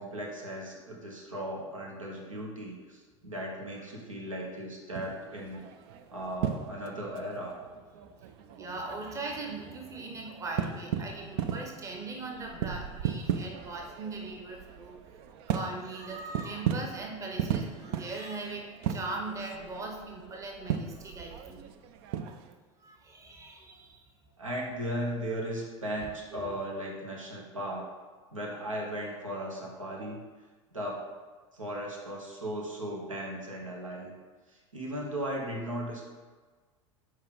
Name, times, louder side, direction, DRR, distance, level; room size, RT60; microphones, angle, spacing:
voice 1, 0.0-5.6 6.1-7.6 24.4-27.9 28.3-30.2 30.7-31.1 31.5-34.2 34.7-36.0, equal, 80° right, -2 dB, 1.1 m, -37 dB
sound 1, 4.9-22.5, right 8 dB, 50° right, 0.5 m, -37 dB
voice 2, 8.2-15.0 15.5-21.6 22.8-24.0 26.0-26.5, right 3 dB, 20° right, 1 dB, 0.9 m, -40 dB
5.5 x 4.6 x 4.0 m, 1.4 s
figure-of-eight pair, 80°, 17 cm